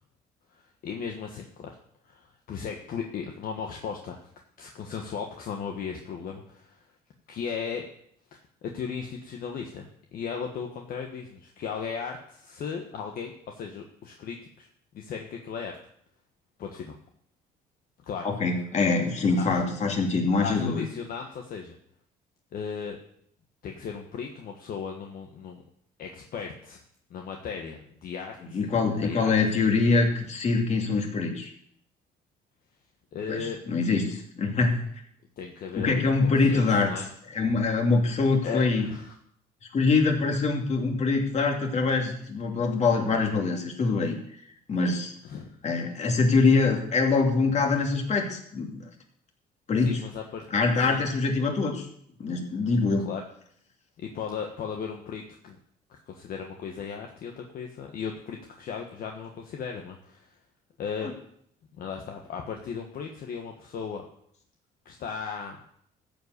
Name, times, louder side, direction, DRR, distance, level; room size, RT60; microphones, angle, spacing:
voice 1, 0.5-1.8 2.0-4.3 4.6-6.8 7.3-7.9 8.3-14.7 14.9-15.7 16.6-16.9 18.0-18.3 19.4-19.6 20.4-21.8 22.5-23.0 23.6-25.6 26.0-26.8 27.1-29.3 33.1-33.6 35.4-37.0 38.4-39.2 45.2-45.6 49.8-50.4 50.8-51.0 53.0-53.2 54.0-55.6 55.9-60.3 60.8-61.1 61.8-64.0 64.8-65.6, left 6 dB, 60° left, 2 dB, 1.4 m, -36 dB
voice 2, 18.2-20.8 28.5-31.5 33.3-34.8 35.7-36.9 37.3-38.9 39.7-44.2 44.7-45.1 45.6-48.7 49.7-50.0 50.5-51.8 52.2-53.1, left 4 dB, 40° left, 2 dB, 2.6 m, -24 dB
14.0 x 5.2 x 8.2 m, 0.68 s
cardioid pair, 110°, 17 cm